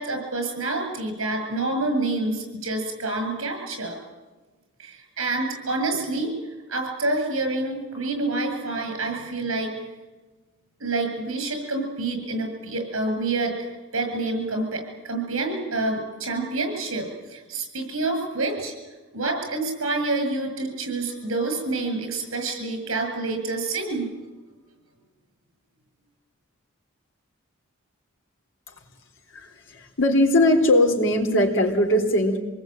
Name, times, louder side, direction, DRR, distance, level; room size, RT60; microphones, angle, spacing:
voice 1, 0.0-3.9 4.8-6.3 6.7-9.7 10.8-13.7 13.9-18.7 19.1-24.1, right 2 dB, 75° right, 5 dB, 7.9 m, -27 dB
voice 2, 29.3-32.4, left 1 dB, 65° left, 3 dB, 3.7 m, -20 dB
26.5 x 20.0 x 9.2 m, 1.2 s
head